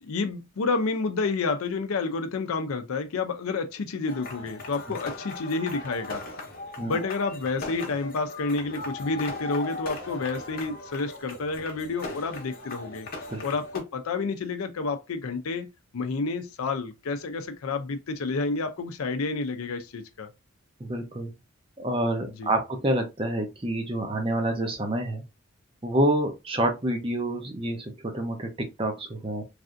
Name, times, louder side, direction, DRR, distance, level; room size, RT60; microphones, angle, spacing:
voice 1, 0.0-6.2 6.8-13.1 13.4-15.7 15.9-20.3 22.4-22.5, left 4 dB, 85° left, 0.5 m, -29 dB
sound 1, 4.1-13.8, left 2 dB, 45° left, 0.8 m, -38 dB
voice 2, 20.8-21.3 21.8-25.2 25.8-29.4, right 1 dB, 25° right, 0.6 m, -28 dB
3.3 x 2.6 x 2.5 m
head